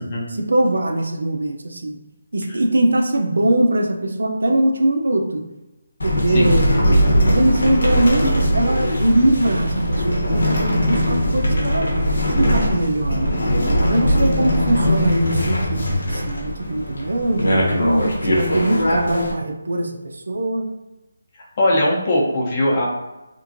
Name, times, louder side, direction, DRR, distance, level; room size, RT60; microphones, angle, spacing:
voice 1, 0.3-2.0 2.3-5.4 6.0-6.9 7.3-11.9 12.4-13.4 13.8-20.7, right 1 dB, 85° right, 3 dB, 0.5 m, -21 dB
sound 1, 6.0-19.3, equal, 80° left, 0.9 m, -20 dB
voice 2, 21.6-22.9, left 1 dB, 25° left, -3 dB, 0.6 m, -20 dB
2.9 x 2.5 x 2.5 m, 1.0 s
hypercardioid pair, 175°, 0 cm